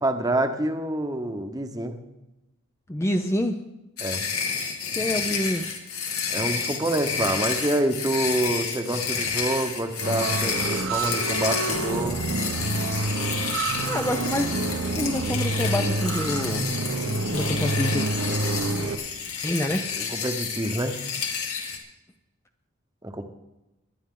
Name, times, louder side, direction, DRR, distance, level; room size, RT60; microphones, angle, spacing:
voice 1, 0.0-2.0 4.0-4.2 6.3-12.2 19.6-20.9 23.0-23.2, right 1 dB, 15° right, 7 dB, 1.0 m, -27 dB
voice 2, 2.9-3.6 4.9-5.7 13.9-14.5 14.9-18.1 19.4-19.9, left 1 dB, 15° left, 6 dB, 0.5 m, -27 dB
sound 1, 4.0-21.8, left 6 dB, 85° left, 2.4 m, -30 dB
sound 2, 10.0-18.9, right 2 dB, 70° right, 1.1 m, -28 dB
21.0 x 10.5 x 3.8 m, 0.98 s
head